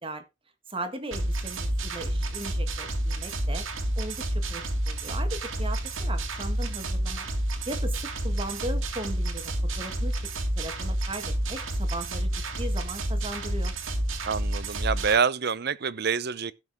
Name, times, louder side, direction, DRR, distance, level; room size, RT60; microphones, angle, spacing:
voice 1, 0.7-3.6 4.0-7.3 7.7-10.3 10.6-12.3 12.6-13.7, right 1 dB, 25° right, 1.6 m, -38 dB
sound 1, 1.1-15.2, right 1 dB, 85° right, 2.3 m, -29 dB
voice 2, 14.2-16.5, right 6 dB, 55° right, 0.7 m, -26 dB
17.0 x 6.0 x 3.6 m
head